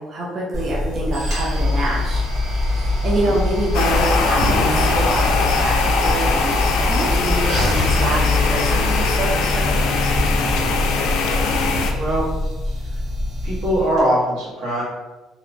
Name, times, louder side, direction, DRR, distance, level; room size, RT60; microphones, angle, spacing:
voice 1, 0.0-2.2 2.6-9.9, right 1 dB, 35° right, -4 dB, 0.4 m, -26 dB
sound 1, 0.5-14.0, left 2 dB, 55° right, 1.3 m, -23 dB
sound 2, 3.7-11.9, left 4 dB, 80° left, 0.3 m, -21 dB
voice 2, 11.9-12.3 12.8-13.0 13.4-14.8, right 1 dB, 85° right, -6 dB, 1.1 m, -21 dB
2.8 x 2.1 x 2.5 m, 1.1 s
cardioid pair, 165°, 0 cm